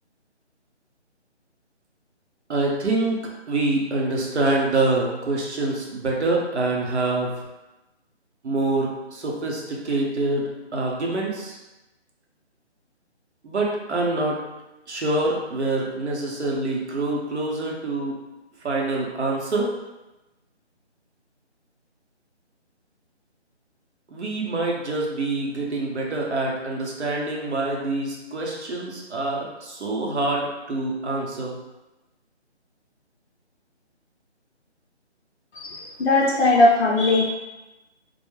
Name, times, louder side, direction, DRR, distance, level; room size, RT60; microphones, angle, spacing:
voice 1, 2.5-3.2 3.5-7.4 8.4-11.6 13.4-14.4 14.9-18.2 18.6-19.7 24.1-31.6, right 2 dB, 70° right, -2 dB, 0.8 m, -25 dB
voice 2, 35.5-37.2, left 2 dB, 65° left, -3 dB, 0.5 m, -19 dB
2.2 x 2.0 x 3.0 m, 1.0 s
figure-of-eight pair, 170°, 35 cm